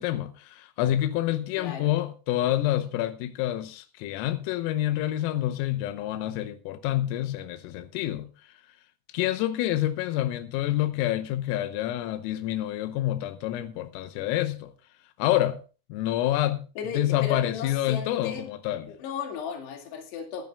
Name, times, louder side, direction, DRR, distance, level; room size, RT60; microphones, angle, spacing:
voice 1, 0.0-8.3 9.1-14.7 15.2-15.6 15.9-16.7 17.0-18.9, left 13 dB, 90° left, 3.6 m, -27 dB
voice 2, 1.6-1.9 16.8-18.5 18.9-20.5, left 6 dB, 60° left, 4.0 m, -35 dB
24.0 x 10.5 x 2.3 m
omnidirectional pair, 5.9 m